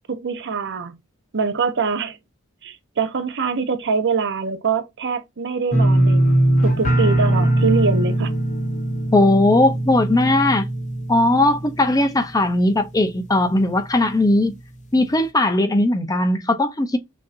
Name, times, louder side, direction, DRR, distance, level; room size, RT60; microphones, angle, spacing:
voice 1, 0.1-1.0 1.3-2.2 2.6-6.2 6.6-8.3, right 4 dB, 55° right, 0.8 m, -23 dB
sound 1, 5.7-12.6 12.9-13.4 13.8-13.9, right 1 dB, 35° left, 1.1 m, -20 dB
voice 2, 9.1-10.7 11.1-14.5 14.9-17.0, left 1 dB, 15° left, 0.6 m, -18 dB
6.3 x 2.8 x 2.5 m
head